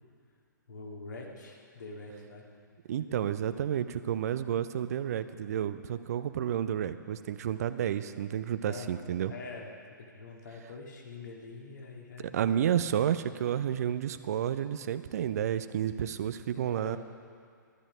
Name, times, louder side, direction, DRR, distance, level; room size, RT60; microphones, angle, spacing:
voice 1, 0.7-2.4 3.0-3.3 8.6-9.7 10.0-12.5 16.5-17.0, left 3 dB, 60° left, -1 dB, 2.1 m, -45 dB
voice 2, 2.9-9.3 12.3-17.0, right 9 dB, 50° right, 12 dB, 0.5 m, -31 dB
12.0 x 11.5 x 5.0 m, 2.3 s
figure-of-eight pair, 115°, 11 cm